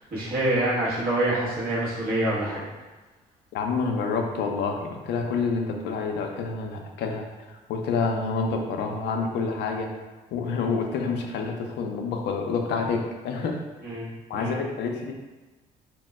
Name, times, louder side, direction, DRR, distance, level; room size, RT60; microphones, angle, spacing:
voice 1, 0.0-2.7 13.8-14.6, right 1 dB, 55° right, -8 dB, 1.4 m, -26 dB
voice 2, 3.5-9.9 10.3-13.6 14.3-15.1, left 4 dB, 80° left, 2 dB, 0.5 m, -28 dB
2.9 x 2.1 x 3.4 m, 1.2 s
supercardioid pair, 70°, 18 cm